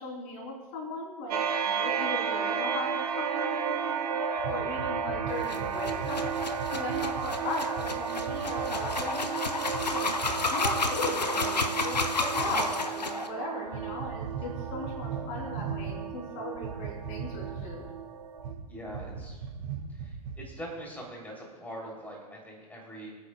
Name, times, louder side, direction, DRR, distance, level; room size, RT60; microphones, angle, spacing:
voice 1, 0.0-1.4 1.7-10.1 10.5-17.9, left 1 dB, 45° left, 0 dB, 3.5 m, -37 dB
sound 1, 1.3-18.5, right 7 dB, 70° right, 1.2 m, -33 dB
sound 2, 4.4-7.3 7.7-7.9 8.2-9.0 9.7-9.9 10.2-10.4 10.6-10.8 11.9-12.5 13.7-16.0 16.5-17.9 18.4-18.6 18.9-20.5, right 6 dB, 55° right, 2.4 m, -38 dB
sound 3, 5.4-13.3, left 3 dB, 90° left, 0.7 m, -32 dB
voice 2, 18.6-19.4 19.9-23.2, equal, 10° left, -2 dB, 3.2 m, -43 dB
26.5 x 9.1 x 2.3 m, 1.3 s
figure-of-eight pair, 90°, 21 cm